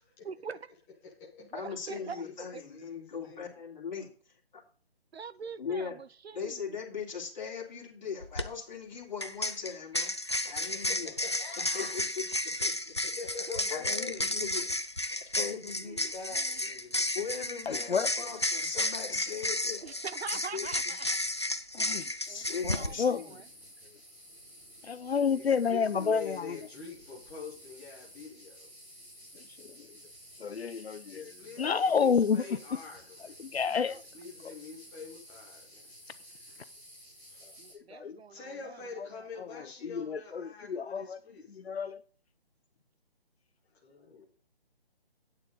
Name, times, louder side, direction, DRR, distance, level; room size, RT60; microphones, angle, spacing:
voice 1, 0.2-0.6 1.5-2.2 2.5-2.6 5.1-6.8 13.5-13.6 15.8-16.1 19.8-21.2 22.3-23.4 33.7-34.0 37.6-38.8, right 6 dB, 80° right, 0.7 m, -43 dB
voice 2, 1.0-1.5 1.8-3.6 10.5-11.9 13.0-14.3 16.1-17.1 25.3-28.7 31.1-33.4 33.8-35.9 37.3-37.5 38.0-41.7 43.8-44.2, left 4 dB, 5° left, 1.0 m, -45 dB
voice 3, 1.5-4.1 4.5-4.6 5.6-6.0 6.3-10.1 10.4-11.1 11.7-12.2 12.6-12.7 13.0-13.1 13.7-14.7 15.3-16.1 17.1-19.8 20.3-20.7 22.3-23.3, left 6 dB, 45° left, 3.0 m, -39 dB
sound 1, 8.2-8.4 9.2-22.9, left 1 dB, 30° left, 0.4 m, -32 dB
voice 4, 17.7-18.3 21.7-22.1 22.6-23.2 24.8-26.6 29.6-29.7 30.4-32.4 33.4-34.0 34.4-34.5 37.9-38.2 39.4-41.2 41.6-42.0, left 6 dB, 80° left, 0.7 m, -30 dB
sound 2, 22.2-37.7, equal, 15° right, 3.8 m, -53 dB
8.9 x 8.1 x 3.9 m
figure-of-eight pair, 165°, 31 cm